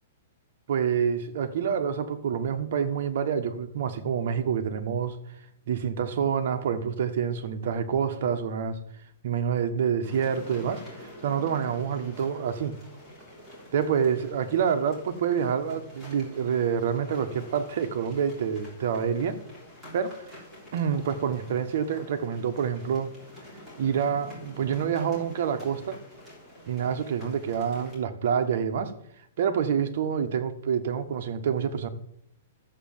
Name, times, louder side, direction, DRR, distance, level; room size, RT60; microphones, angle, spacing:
voice 1, 0.7-5.2 5.7-8.8 9.2-12.7 13.7-19.4 19.9-20.2 20.7-23.1 23.8-26.0 26.7-28.9 29.4-31.9, right 7 dB, 45° right, 1.3 m, -27 dB
sound 1, 10.0-28.0, equal, ahead, 3.5 m, -47 dB
13.0 x 7.7 x 7.3 m
hypercardioid pair, 180°, 0 cm